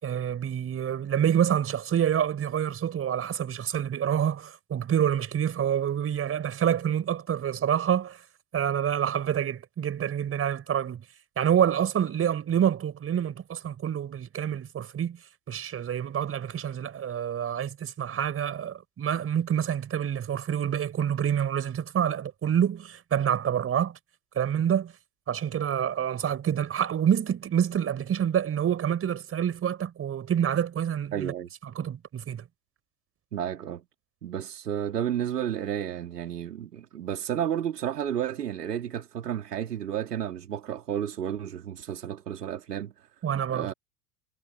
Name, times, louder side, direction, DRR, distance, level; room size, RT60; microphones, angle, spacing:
voice 1, 0.0-8.2 8.5-11.0 11.4-15.2 15.5-24.0 24.3-24.9 25.3-31.3 31.7-32.4 43.2-43.7, right 9 dB, 25° right, 4.7 m, -27 dB
voice 2, 31.1-31.5 33.3-33.8 34.2-42.9 43.5-43.7, right 10 dB, 70° right, 3.3 m, -32 dB
figure-of-eight pair, 80°, 49 cm